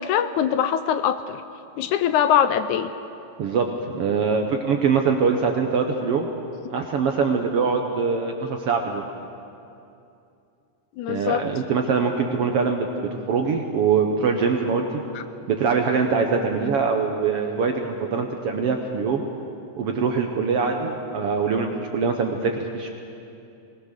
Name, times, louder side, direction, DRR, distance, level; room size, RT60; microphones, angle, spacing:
voice 1, 0.0-1.4 1.8-2.9 11.0-11.4 15.2-15.3, left 9 dB, 80° left, 11 dB, 1.9 m, -22 dB
voice 2, 3.4-6.3 6.7-9.1 11.1-14.8 15.5-19.2 19.8-22.9, right 5 dB, 65° right, 3 dB, 1.5 m, -23 dB
21.0 x 19.5 x 6.6 m, 2.7 s
omnidirectional pair, 3.7 m